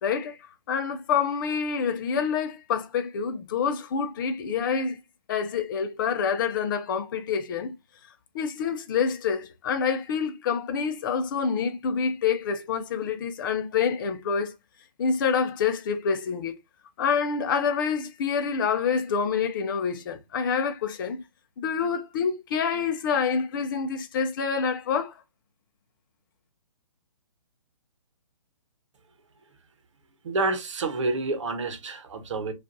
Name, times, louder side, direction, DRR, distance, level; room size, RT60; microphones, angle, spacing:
voice 1, 0.0-0.4 0.7-5.0 5.3-7.7 8.3-14.5 15.0-16.6 17.0-21.2 21.6-25.1, left 6 dB, 40° left, 0.6 m, -27 dB
voice 2, 30.2-32.5, right 3 dB, 60° right, 1.0 m, -28 dB
4.9 x 2.5 x 2.7 m
hypercardioid pair, 145°, 18 cm